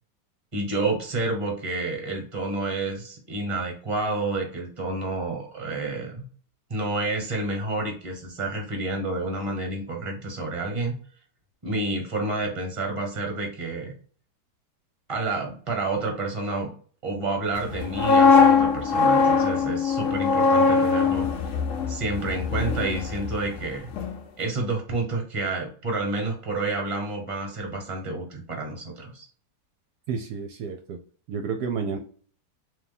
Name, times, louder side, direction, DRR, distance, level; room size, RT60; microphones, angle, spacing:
voice 1, 0.5-6.3 6.7-10.9 11.6-13.9 15.1-16.7 17.0-21.3 21.9-23.9 24.4-29.3, right 2 dB, 20° right, 1 dB, 1.1 m, -29 dB
sound 1, 17.7-23.6 23.9-24.2, left 4 dB, 65° left, 0.8 m, -21 dB
voice 2, 30.1-31.0 31.3-32.0, right 5 dB, 75° right, 4 dB, 1.1 m, -30 dB
3.5 x 2.8 x 4.0 m, 0.44 s
omnidirectional pair, 1.8 m